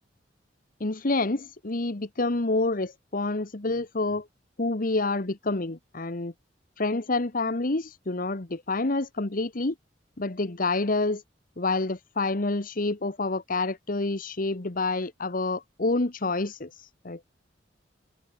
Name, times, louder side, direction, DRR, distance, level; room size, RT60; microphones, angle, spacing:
voice 1, 0.8-4.3 4.6-6.3 6.8-9.7 10.2-11.2 11.6-17.3, left 2 dB, 50° left, 1.3 m, -28 dB
head